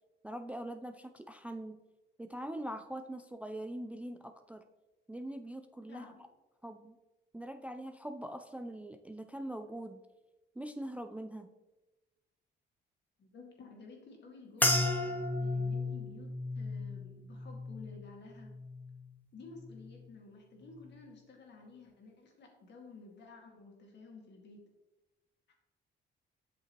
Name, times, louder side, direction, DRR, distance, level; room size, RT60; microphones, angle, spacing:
voice 1, 0.2-1.8 2.2-4.6 5.1-6.1 6.6-7.0 7.3-10.0 10.6-11.5, right 1 dB, 5° right, 9 dB, 0.3 m, -42 dB
voice 2, 5.9-6.2 13.2-18.5 19.3-24.6 25.5-25.6, left 3 dB, 60° left, 0 dB, 2.0 m, -53 dB
sound 1, 14.6-19.1 19.5-20.1 20.7-21.0, left 2 dB, 10° left, 0.9 m, -35 dB
7.9 x 6.3 x 3.1 m, 1.1 s
cardioid pair, 90°, 20 cm